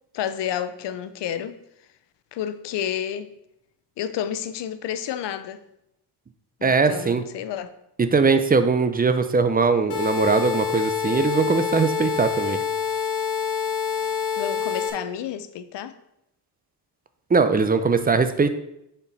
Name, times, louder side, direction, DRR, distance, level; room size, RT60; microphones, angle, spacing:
voice 1, 0.1-1.6 2.3-3.3 4.0-5.6 6.6-7.7 14.4-15.9, left 9 dB, 85° left, 12 dB, 0.6 m, -30 dB
voice 2, 6.6-7.2 8.0-12.6 17.3-18.6, right 4 dB, 20° right, 9 dB, 0.5 m, -20 dB
sound 1, 9.9-14.9, left 7 dB, 70° left, 1.6 m, -26 dB
7.0 x 4.5 x 4.0 m, 0.81 s
cardioid pair, 105°, 41 cm